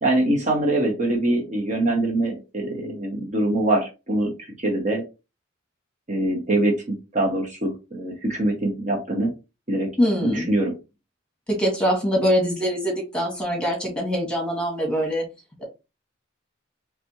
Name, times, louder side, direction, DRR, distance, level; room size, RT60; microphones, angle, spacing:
voice 1, 0.0-4.3 4.6-5.0 6.1-9.3 9.7-9.9 10.2-10.7, right 1 dB, 40° right, 0 dB, 1.2 m, -23 dB
voice 2, 10.0-10.5 11.5-15.2 15.6-15.7, equal, 5° left, -1 dB, 2.0 m, -23 dB
4.1 x 3.4 x 3.1 m, 0.27 s
head